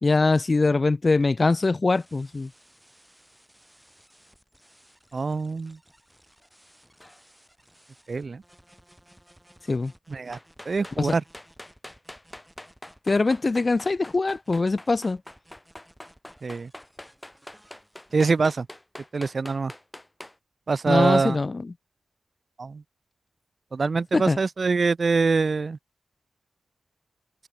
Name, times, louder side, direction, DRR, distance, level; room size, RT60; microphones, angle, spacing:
voice 1, 0.0-2.5 9.7-9.9 11.0-11.1 13.1-15.2 20.9-21.7 24.1-24.4, left 3 dB, 35° left, 0.4 m, -22 dB
sound 1, 1.9-18.5, equal, 5° right, 5.5 m, -58 dB
voice 2, 5.1-5.8 8.1-8.4 10.1-10.4 10.7-11.2 16.4-16.7 18.1-18.7 19.1-19.7 20.7-21.4 22.6-22.8 23.7-25.8, right 4 dB, 50° right, 0.6 m, -24 dB
sound 2, 7.0-7.2 10.3-20.4, left 1 dB, 10° left, 2.3 m, -44 dB
wide cardioid pair, 120°, 0 cm